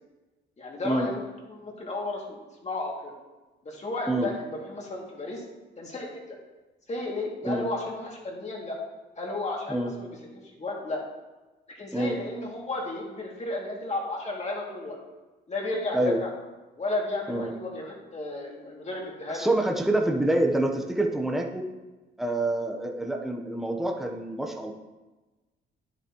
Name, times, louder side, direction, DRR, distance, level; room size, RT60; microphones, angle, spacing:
voice 1, 0.6-1.2 1.5-3.1 3.6-5.4 5.8-6.4 6.9-8.8 9.2-10.2 10.6-11.0 11.7-15.0 15.5-16.3 16.8-19.5, left 2 dB, 35° left, -2 dB, 2.5 m, -33 dB
voice 2, 19.3-21.7 22.2-24.7, right 1 dB, ahead, 1 dB, 1.0 m, -26 dB
10.0 x 8.2 x 3.1 m, 1.2 s
cardioid pair, 90°, 20 cm